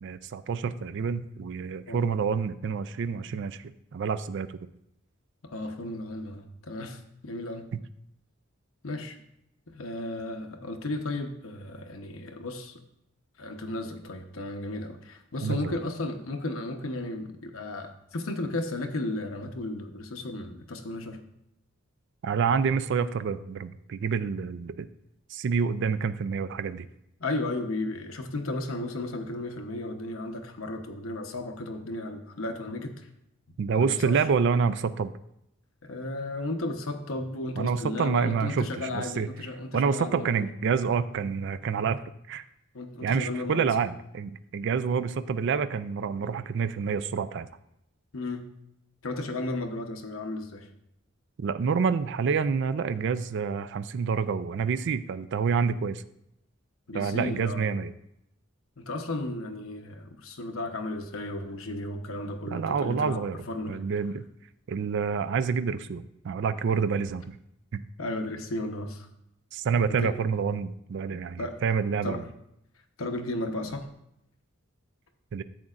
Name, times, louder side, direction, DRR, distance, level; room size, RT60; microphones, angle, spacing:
voice 1, 0.0-4.5 15.4-15.8 22.2-24.9 25.3-26.9 33.6-35.1 37.6-39.3 39.7-42.0 42.3-42.4 43.0-47.5 51.4-56.0 56.9-57.9 62.5-63.4 63.7-64.2 64.7-67.4 67.7-67.8 69.5-72.2 75.3-75.4, right 6 dB, 60° right, 13 dB, 0.4 m, -28 dB
voice 2, 5.4-7.7 8.8-9.2 9.7-12.7 13.4-21.2 27.2-33.1 33.7-34.2 35.8-40.4 42.7-43.9 48.1-48.4 49.0-50.7 56.9-57.7 58.8-63.8 68.0-69.1 69.8-70.2 71.1-71.6 72.0-72.3 73.0-73.9, left 2 dB, 85° left, 5 dB, 0.9 m, -34 dB
11.0 x 7.7 x 2.5 m, 0.79 s
head